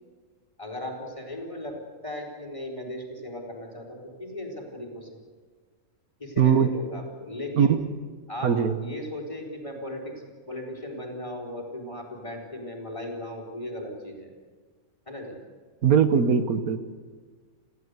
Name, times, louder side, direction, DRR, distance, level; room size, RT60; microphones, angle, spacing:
voice 1, 0.6-5.1 6.2-7.8 8.3-8.5 8.8-14.3 15.1-15.4, left 1 dB, 20° left, 1 dB, 4.2 m, -37 dB
voice 2, 6.4-6.7 7.5-7.9 8.4-8.8 15.8-16.8, right 7 dB, 80° right, 10 dB, 1.6 m, -20 dB
29.0 x 15.5 x 8.2 m, 1.5 s
omnidirectional pair, 1.5 m